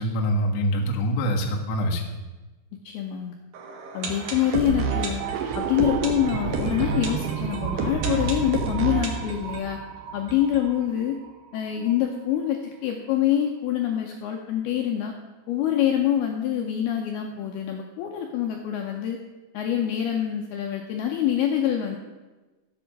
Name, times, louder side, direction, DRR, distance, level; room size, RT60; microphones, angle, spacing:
voice 1, 0.0-2.0, equal, 75° left, 0 dB, 1.5 m, -24 dB
voice 2, 2.9-3.4 3.9-5.2 5.5-9.8 10.1-11.2 11.5-15.1 15.5-19.2 19.5-22.0, left 10 dB, 90° left, 2 dB, 2.2 m, -25 dB
sound 1, 3.5-11.3 11.6-11.7 11.9-12.0 12.5-12.6, right 4 dB, 70° right, 1.9 m, -30 dB
sound 2, 5.2-10.5, right 12 dB, 85° right, 2.5 m, -32 dB
13.5 x 8.1 x 6.6 m, 1.2 s
omnidirectional pair, 5.6 m